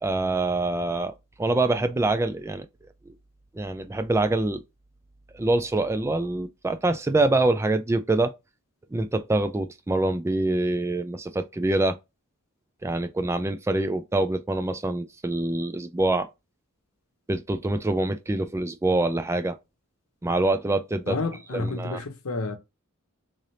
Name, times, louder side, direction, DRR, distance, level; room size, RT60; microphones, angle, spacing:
voice 1, 0.0-1.1 1.4-2.7 3.5-4.6 5.3-8.3 8.9-12.0 12.8-16.3 17.3-19.6 20.2-21.2 21.5-22.0, right 2 dB, 10° right, 0.3 m, -25 dB
voice 2, 21.1-22.6, left 3 dB, 70° left, 0.8 m, -30 dB
3.8 x 3.3 x 2.7 m
head